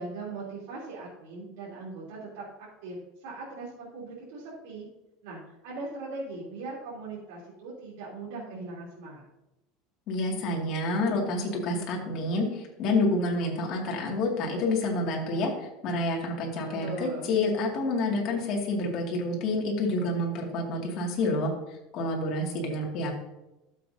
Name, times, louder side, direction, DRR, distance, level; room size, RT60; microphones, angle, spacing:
voice 1, 0.0-2.5 2.8-3.0 3.2-4.9 5.2-9.2 16.8-17.3, right 3 dB, 75° right, -7 dB, 3.3 m, -39 dB
voice 2, 10.1-21.5 21.9-23.1, left 2 dB, 45° left, -1 dB, 2.3 m, -28 dB
12.5 x 7.5 x 2.8 m, 0.96 s
cardioid pair, 160°, 0 cm